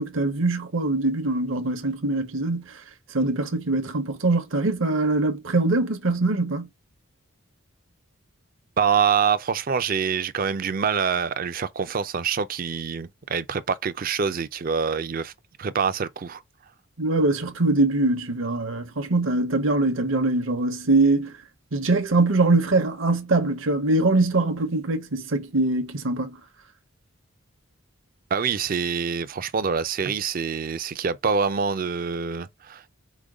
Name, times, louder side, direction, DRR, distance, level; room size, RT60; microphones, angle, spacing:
voice 1, 0.0-2.7 3.1-6.7 17.0-21.3 21.7-26.4, right 2 dB, 65° right, 0.8 m, -23 dB
voice 2, 8.8-15.3 15.6-16.4 28.3-32.9, right 6 dB, 40° right, 0.4 m, -25 dB
5.0 x 2.2 x 4.8 m
head